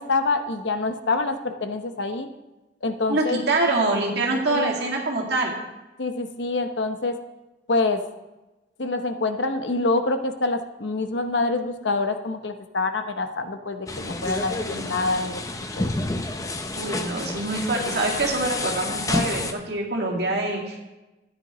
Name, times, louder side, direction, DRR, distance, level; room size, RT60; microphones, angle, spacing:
voice 1, 0.0-2.3 2.8-3.4 4.5-4.7 6.0-7.1 7.7-8.0 8.8-15.4 15.8-15.9, left 3 dB, 75° left, 7 dB, 0.9 m, -26 dB
voice 2, 3.1-5.5 14.5-14.9 16.8-20.8, right 2 dB, 60° right, -1 dB, 2.2 m, -25 dB
sound 1, 13.9-19.5, left 2 dB, 20° left, 0.6 m, -29 dB
14.0 x 9.7 x 3.1 m, 1.0 s
head